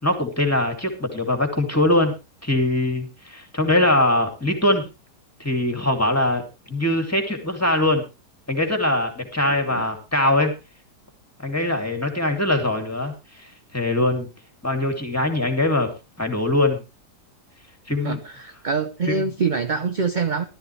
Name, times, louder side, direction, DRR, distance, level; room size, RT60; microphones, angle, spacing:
voice 1, 0.0-2.1 2.4-4.8 5.4-6.4 6.7-8.0 8.5-10.5 11.4-13.1 13.7-14.3 14.6-15.9 16.2-16.8 17.9-18.2 19.2-19.3, left 1 dB, 10° left, 2.5 m, -22 dB
voice 2, 9.5-9.9 18.0-20.4, right 5 dB, 45° right, 0.6 m, -25 dB
15.0 x 13.0 x 3.2 m
omnidirectional pair, 1.8 m